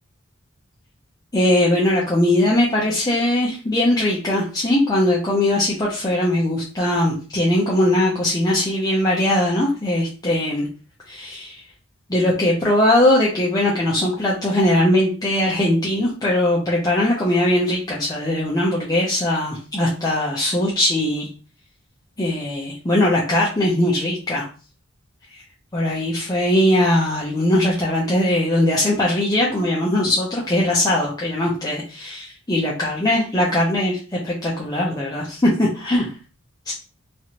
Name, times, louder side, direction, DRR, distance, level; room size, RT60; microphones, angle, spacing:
voice 1, 1.3-10.7 11.1-11.5 12.1-21.3 22.2-24.5 25.3-25.4 25.7-36.1 36.7-36.8, left 1 dB, 20° left, -5 dB, 0.6 m, -20 dB
3.1 x 2.5 x 2.9 m, 0.36 s
head